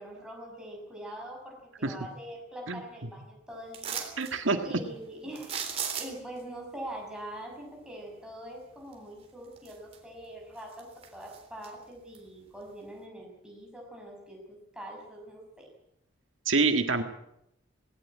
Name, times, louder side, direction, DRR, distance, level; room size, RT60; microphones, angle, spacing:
voice 1, 0.0-4.1 4.6-10.9 11.1-15.7, right 1 dB, 5° right, -1 dB, 6.3 m, -43 dB
sound 1, 3.7-4.3 5.4-6.4 8.9-9.0 9.5-10.2 10.6-11.7 12.1-12.2, right 7 dB, 30° right, 3.7 m, -36 dB
voice 2, 4.2-4.6 16.5-17.0, right 3 dB, 80° right, 6 dB, 1.8 m, -26 dB
18.5 x 18.0 x 8.7 m, 0.79 s
head